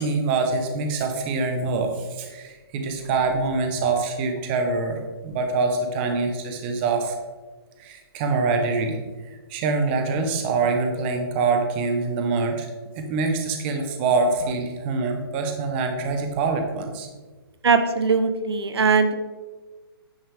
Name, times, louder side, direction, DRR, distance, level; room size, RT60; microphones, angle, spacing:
voice 1, 0.0-7.1 7.8-9.0 9.5-12.7 12.9-17.1, right 4 dB, 25° right, 4 dB, 1.0 m, -25 dB
voice 2, 17.6-19.1, right 5 dB, 85° right, 9 dB, 0.9 m, -20 dB
9.6 x 6.0 x 3.4 m, 1.3 s
hypercardioid pair, 155°, 13 cm